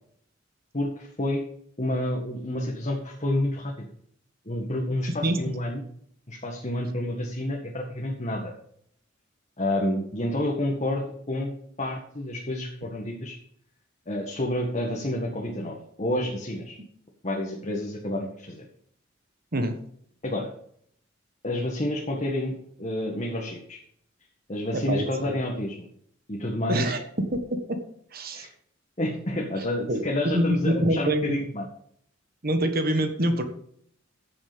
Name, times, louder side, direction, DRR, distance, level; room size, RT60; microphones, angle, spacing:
voice 1, 0.7-1.4 1.8-3.7 4.5-5.8 6.3-8.5 9.6-13.4 14.1-16.8 17.2-18.7 20.2-20.5 21.4-23.8 24.5-25.9 26.3-26.9 28.3-28.5 29.0-31.7, left 1 dB, 35° left, -1 dB, 1.8 m, -29 dB
voice 2, 24.7-25.3 26.7-27.8 28.1-28.5 29.9-30.0 30.3-31.4 32.4-33.4, right 1 dB, 50° right, 7 dB, 1.5 m, -25 dB
15.0 x 7.1 x 5.2 m, 0.66 s
head